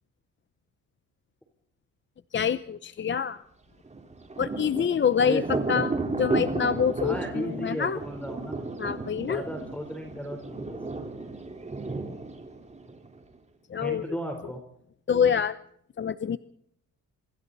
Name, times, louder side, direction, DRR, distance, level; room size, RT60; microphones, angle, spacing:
voice 1, 2.3-3.4 4.4-5.4 5.7-5.9 6.2-8.0 8.8-9.4 13.7-14.0 15.1-15.6 16.0-16.4, left 7 dB, 40° left, 14 dB, 0.9 m, -26 dB
Thunder, 3.9-13.4, right 3 dB, 20° right, 4.2 m, -34 dB
voice 2, 5.2-6.1 7.0-8.6 9.3-11.0 13.8-14.6, equal, 5° left, 4 dB, 4.0 m, -35 dB
27.0 x 24.5 x 4.1 m, 0.73 s
cardioid pair, 90°, 30 cm